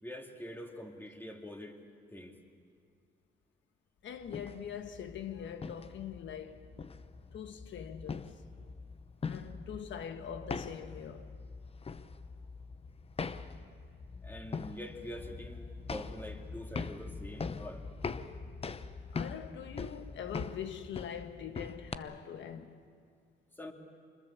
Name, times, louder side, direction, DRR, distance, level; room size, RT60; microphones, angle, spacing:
voice 1, 0.0-1.8 2.1-2.4 14.2-17.8 23.5-23.7, left 1 dB, 10° left, 2.6 m, -45 dB
voice 2, 4.0-6.7 7.3-8.4 9.3-11.4 19.1-22.8, left 8 dB, 70° left, 1.4 m, -43 dB
sound 1, 4.2-22.0, left 4 dB, 30° left, 0.8 m, -42 dB
25.0 x 21.5 x 7.3 m
cardioid pair, 90°, 20 cm